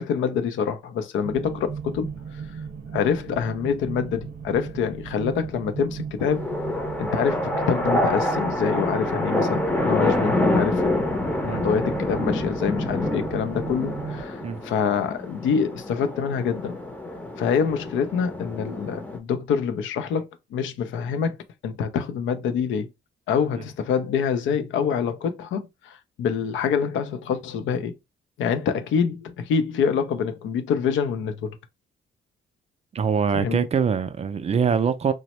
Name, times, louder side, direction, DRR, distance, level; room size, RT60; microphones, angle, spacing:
voice 1, 0.0-2.4 2.9-6.5 7.0-11.1 11.4-16.8 17.4-21.4 21.6-22.9 23.3-28.0 28.4-31.6 33.3-33.7, left 6 dB, 80° left, 0.5 m, -26 dB
sound 1, 1.2-14.2, right 6 dB, 55° right, 0.8 m, -36 dB
sound 2, 6.2-19.2, left 2 dB, 5° left, 0.6 m, -27 dB
voice 2, 32.9-35.1, right 6 dB, 35° right, 0.4 m, -23 dB
3.0 x 2.0 x 2.9 m
cardioid pair, 90°, 20 cm